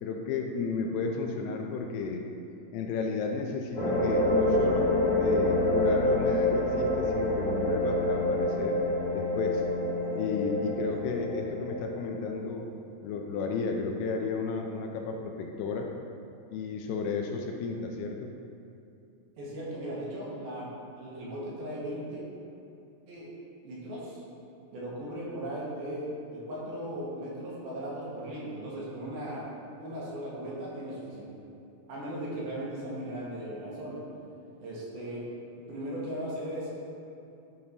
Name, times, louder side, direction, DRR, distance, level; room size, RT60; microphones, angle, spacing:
voice 1, 0.0-2.3 2.7-8.8 9.1-9.6 10.1-12.7 13.0-15.9 16.5-18.3, left 4 dB, 80° left, 2 dB, 2.4 m, -33 dB
sound 1, 3.7-12.3, left 1 dB, 45° left, 2.4 m, -27 dB
voice 2, 19.4-20.7 21.0-22.2 23.1-23.3 23.6-24.2 24.7-29.4 29.8-31.3 31.9-34.0 34.6-35.2 35.7-36.7, right 1 dB, 70° right, -6 dB, 3.4 m, -37 dB
11.0 x 6.7 x 2.9 m, 2.7 s
omnidirectional pair, 4.8 m